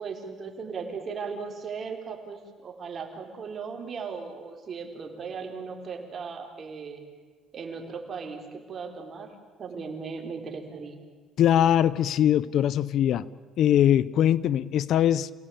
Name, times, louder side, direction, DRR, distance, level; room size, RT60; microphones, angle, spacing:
voice 1, 0.0-7.0 7.5-9.3 9.6-11.0, right 5 dB, 40° right, 4 dB, 4.2 m, -37 dB
voice 2, 11.4-13.2 13.6-15.3, left 10 dB, 65° left, 20 dB, 0.7 m, -21 dB
27.5 x 18.0 x 8.7 m, 1.5 s
cardioid pair, 100°, 0 cm